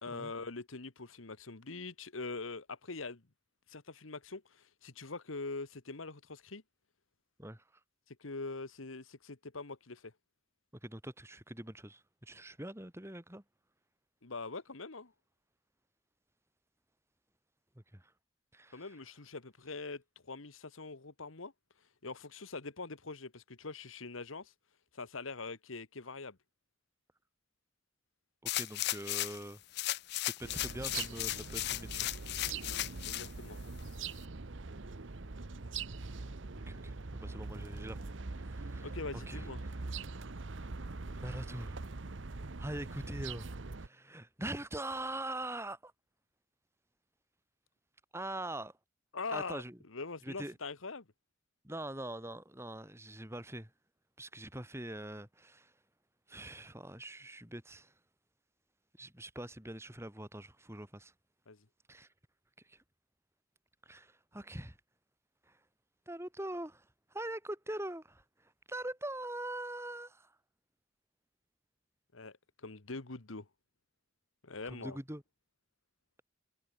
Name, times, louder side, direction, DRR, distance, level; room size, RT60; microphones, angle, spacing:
voice 1, 0.0-3.2 3.7-6.6 8.1-10.1 14.2-15.1 18.7-21.5 22.0-24.5 24.9-26.4 32.5-33.6 38.8-39.6 49.1-51.1 61.5-61.7 72.1-73.5 74.4-75.0, left 3 dB, 85° left, 1.6 m, -43 dB
voice 2, 10.8-13.4 17.9-18.0 18.5-18.9 28.5-29.6 30.2-32.1 36.7-39.5 41.2-41.8 42.6-45.9 48.1-48.7 49.3-49.8 50.2-50.5 51.6-53.7 54.2-55.7 56.3-57.9 59.0-61.1 61.9-62.1 62.7-62.8 63.9-64.8 65.5-65.6 66.1-66.8 67.1-68.2 68.7-70.3 74.6-75.2, right 1 dB, 15° right, 4.3 m, -43 dB
sound 1, 28.5-29.4 29.7-33.3 33.8-33.9, left 16 dB, 55° left, 0.5 m, -36 dB
sound 2, 30.4-43.9, right 3 dB, 65° right, 1.0 m, -43 dB
head